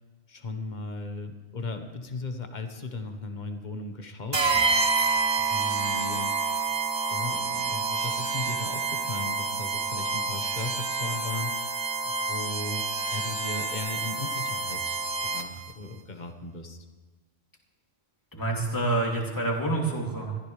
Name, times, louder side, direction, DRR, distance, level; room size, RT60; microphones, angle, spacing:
voice 1, 0.3-4.8 5.4-6.3 7.1-11.8 12.3-12.8 13.1-16.8, left 3 dB, 40° left, 6 dB, 1.4 m, -37 dB
sound 1, 4.3-15.7, right 4 dB, 25° right, 0.6 m, -28 dB
voice 2, 18.3-20.4, right 2 dB, 15° left, -2 dB, 2.8 m, -27 dB
23.0 x 15.0 x 3.3 m, 1.4 s
omnidirectional pair, 1.3 m